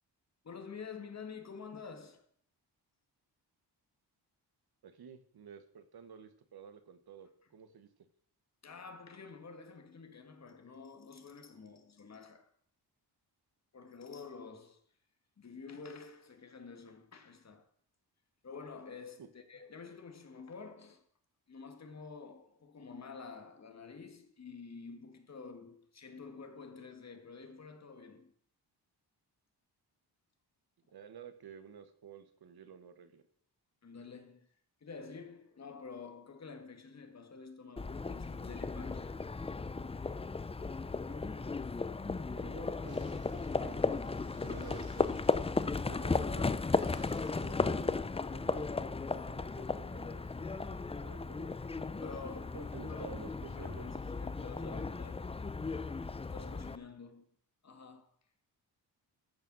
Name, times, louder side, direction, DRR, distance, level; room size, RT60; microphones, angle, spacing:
voice 1, 0.4-2.3 8.6-12.5 13.7-14.8 15.4-17.7 18.4-21.0 21.5-28.3 33.8-34.5 34.8-39.2 52.0-52.6 52.9-55.3 56.2-57.3 57.6-58.1, left 5 dB, 40° left, 1.9 m, -49 dB
voice 2, 4.8-7.9 19.2-19.3 30.9-33.2 41.1-41.4 42.3-44.0 44.4-45.1 45.8-46.6 47.3-48.0 48.3-51.7 52.5-53.9, right 7 dB, 65° right, 1.4 m, -52 dB
Livestock farm animals working animals, 37.8-56.7, left 4 dB, 15° left, 0.5 m, -35 dB
sound 1, 42.9-47.9, right 3 dB, 45° right, 2.5 m, -57 dB
14.5 x 6.9 x 6.2 m
wide cardioid pair, 140°, 41 cm